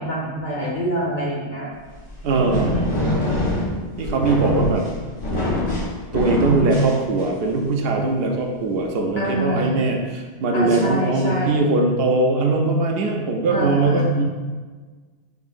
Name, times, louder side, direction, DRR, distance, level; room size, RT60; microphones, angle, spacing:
voice 1, 0.0-1.7 2.4-3.2 9.2-9.8 10.5-11.7 13.5-14.1, equal, 45° left, -4 dB, 0.8 m, -26 dB
sound 1, 1.9-7.5, left 1 dB, 80° left, 1.5 m, -25 dB
voice 2, 2.2-2.7 4.0-4.9 6.1-14.2, right 3 dB, 65° right, 1 dB, 0.7 m, -20 dB
5.3 x 2.6 x 2.5 m, 1.4 s
omnidirectional pair, 1.3 m